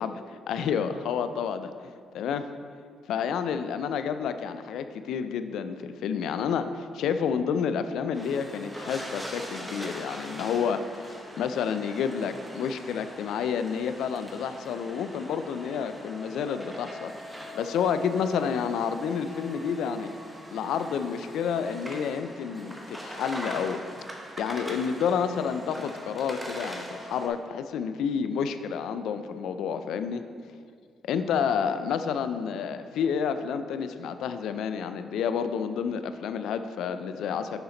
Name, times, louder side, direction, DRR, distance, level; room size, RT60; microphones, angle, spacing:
voice 1, 0.5-2.5 3.1-20.1 20.5-23.8 24.4-30.2 31.0-37.6, left 7 dB, 80° left, 10 dB, 0.4 m, -30 dB
sound 1, 8.1-27.3, equal, 10° right, 1.2 m, -42 dB
6.7 x 5.8 x 3.8 m, 2.1 s
supercardioid pair, 65°, 0 cm